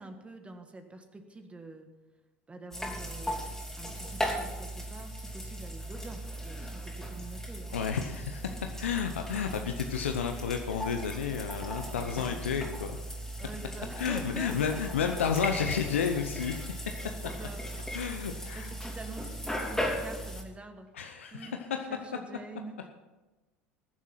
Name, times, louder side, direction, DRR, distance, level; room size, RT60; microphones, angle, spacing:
voice 1, 0.0-1.9 2.5-7.8 9.5-9.9 12.7-12.8 13.4-15.1 17.0-17.6 17.9-18.0 18.4-21.6 21.9-22.9, right 3 dB, 15° right, 6 dB, 1.5 m, -46 dB
sound 1, 2.7-20.4, equal, 5° left, 3.5 m, -37 dB
voice 2, 7.7-13.0 14.0-17.0 17.9-18.7 20.9-21.5, left 7 dB, 80° left, 5 dB, 0.9 m, -31 dB
20.5 x 7.4 x 5.8 m, 1.1 s
hypercardioid pair, 75°, 7 cm